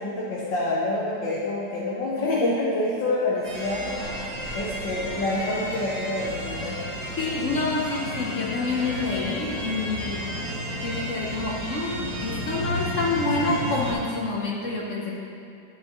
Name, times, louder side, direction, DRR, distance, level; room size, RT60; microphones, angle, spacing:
voice 1, 0.0-4.1 4.5-6.8, left 2 dB, 80° left, -7 dB, 1.8 m, -27 dB
sound 1, 3.4-13.9, equal, 60° right, 2.4 m, -32 dB
voice 2, 7.2-10.3 10.8-15.2, left 3 dB, 55° left, -3 dB, 0.9 m, -28 dB
11.5 x 6.3 x 3.0 m, 2.5 s
omnidirectional pair, 2.0 m